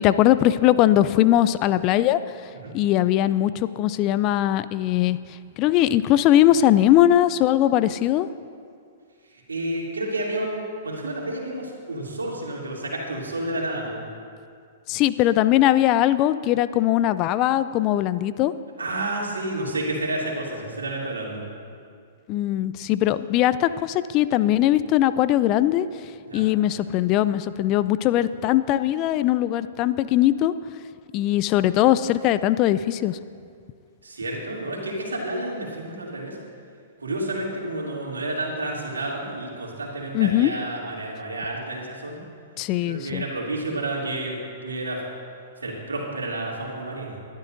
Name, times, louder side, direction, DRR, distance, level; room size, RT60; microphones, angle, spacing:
voice 1, 0.0-2.2 2.7-5.2 5.6-8.3 14.9-18.5 22.3-25.9 26.3-30.5 31.1-33.2 40.1-40.5 42.6-43.2, left 13 dB, 40° left, 14 dB, 0.4 m, -20 dB
voice 2, 9.5-14.0 18.8-21.4 26.2-26.5 34.0-36.4 37.0-42.2 42.8-44.3 44.6-45.0 45.6-47.2, right 1 dB, 85° right, -3 dB, 2.8 m, -30 dB
20.5 x 12.0 x 2.6 m, 2.3 s
hypercardioid pair, 115°, 0 cm